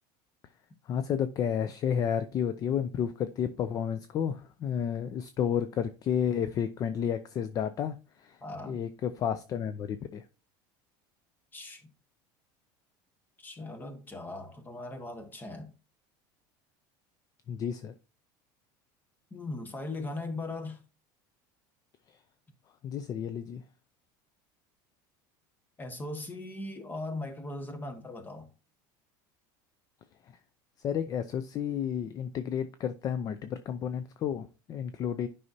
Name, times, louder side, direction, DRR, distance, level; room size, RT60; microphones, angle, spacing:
voice 1, 0.9-7.9 8.2-8.4 8.7-10.2 17.5-17.9 22.8-23.6 30.8-35.3, left 8 dB, 35° left, 0.5 m, -31 dB
voice 2, 8.4-8.8 11.5-11.9 13.4-15.7 19.3-20.8 25.8-28.5, left 2 dB, 15° left, 1.3 m, -39 dB
9.5 x 5.5 x 2.7 m
supercardioid pair, 130°, 11 cm